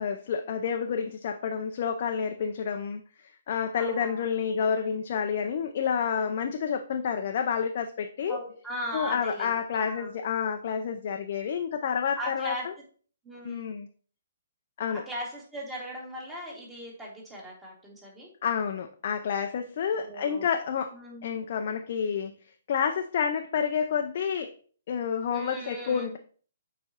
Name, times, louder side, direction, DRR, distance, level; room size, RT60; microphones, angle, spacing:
voice 1, 0.0-3.0 3.5-8.4 8.9-12.7 13.4-13.9 14.8-15.0 18.4-20.9 21.2-22.4 22.7-24.5 24.9-26.2, left 7 dB, 50° left, 4 dB, 0.5 m, -29 dB
voice 2, 3.8-4.2 8.3-10.2 12.2-12.7 13.2-13.7 15.1-18.3 20.0-20.5 20.9-21.4 25.3-26.1, equal, 10° right, -3 dB, 2.2 m, -38 dB
6.9 x 4.9 x 3.0 m, 0.43 s
figure-of-eight pair, 125°, 0 cm